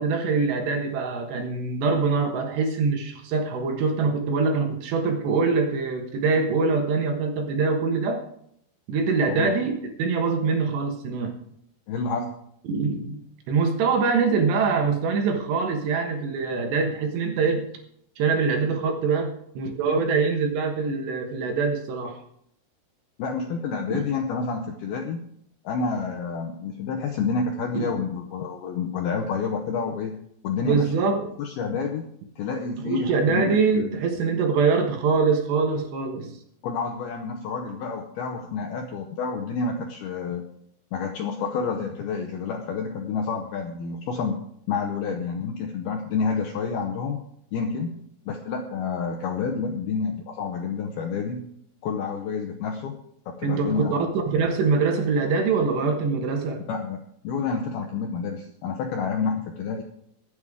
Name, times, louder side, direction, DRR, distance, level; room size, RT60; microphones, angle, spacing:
voice 1, 0.0-8.3 8.9-11.3 12.6-13.2 13.5-17.6 18.2-22.2 27.7-27.9 30.6-31.3 32.8-36.4 53.4-54.0 54.3-56.6, right 4 dB, 70° right, 3 dB, 3.3 m, -24 dB
voice 2, 9.2-9.6 11.9-12.3 23.2-25.2 25.6-30.8 31.4-32.0 32.4-33.4 33.8-34.0 36.6-40.5 40.9-44.4 44.7-47.2 47.5-47.9 48.3-51.4 51.8-53.0 53.3-54.0 56.7-57.0 57.2-59.8, left 5 dB, 75° left, 3 dB, 2.3 m, -29 dB
24.0 x 8.2 x 3.7 m, 0.71 s
omnidirectional pair, 5.6 m